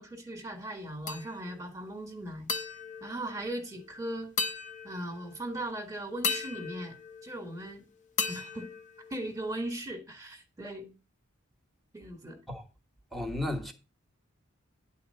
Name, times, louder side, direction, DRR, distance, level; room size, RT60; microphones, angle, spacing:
voice 1, 0.0-2.5 3.0-4.4 4.8-7.0 7.2-7.8 8.3-8.7 9.1-10.9 11.9-12.4, right 1 dB, 15° right, 1.5 m, -38 dB
sound 1, 1.1-1.7 2.5-3.9 4.4-5.4 6.2-7.7 8.2-9.6, left 5 dB, 35° left, 0.8 m, -36 dB
voice 2, 13.1-13.7, left 1 dB, ahead, 1.4 m, -33 dB
10.5 x 4.0 x 6.6 m
head